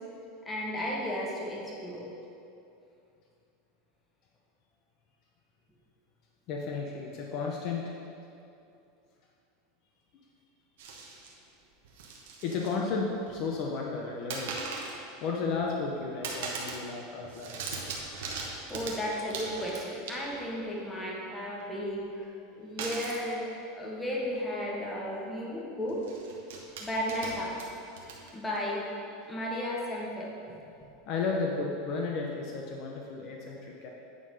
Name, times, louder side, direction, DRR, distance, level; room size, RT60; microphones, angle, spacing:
voice 1, 0.4-2.1 18.7-22.3 22.5-26.0 26.8-27.6 28.3-28.9 29.3-30.3, equal, 10° left, -4 dB, 1.5 m, -34 dB
voice 2, 6.5-8.0 12.4-14.5 15.2-17.6 31.1-33.9, left 4 dB, 50° left, -1 dB, 0.8 m, -33 dB
sound 1, 10.8-11.3 11.8-12.8 13.1-13.6 14.3-15.0 15.4-15.9 16.2-16.9 17.1-20.5 22.8-23.3 24.2-24.3 24.6-24.8 25.9-28.6, right 4 dB, 80° right, 1.1 m, -40 dB
9.4 x 4.0 x 5.4 m, 2.6 s
supercardioid pair, 140°, 0 cm